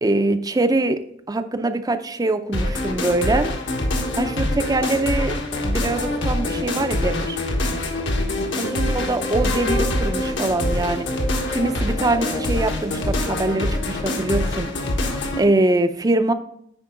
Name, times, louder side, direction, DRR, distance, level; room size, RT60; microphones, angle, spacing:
voice 1, 0.0-1.0 1.3-3.5 4.2-7.4 8.5-11.1 11.5-15.0 15.4-16.3, right 2 dB, 20° right, 9 dB, 0.5 m, -23 dB
sound 1, 2.5-15.5, left 1 dB, 65° left, 1.4 m, -24 dB
9.7 x 4.6 x 3.7 m, 0.74 s
head